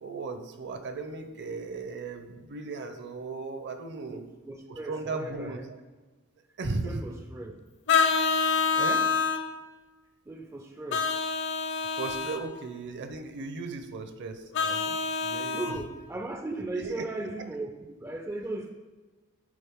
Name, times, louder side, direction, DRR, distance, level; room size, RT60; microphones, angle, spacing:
voice 1, 0.0-4.3 4.7-5.7 6.6-7.1 8.7-9.1 12.0-15.6 16.8-17.0, right 3 dB, 55° right, 7 dB, 0.6 m, -36 dB
voice 2, 4.1-5.6 6.9-7.5 10.3-11.1 11.8-12.0 15.5-18.7, right 2 dB, 10° right, 4 dB, 0.3 m, -37 dB
Vehicle horn car horn honking, 7.9-9.4 10.9-12.4 14.5-15.7, left 5 dB, 55° left, 0.7 m, -26 dB
10.0 x 3.6 x 3.6 m, 1.3 s
head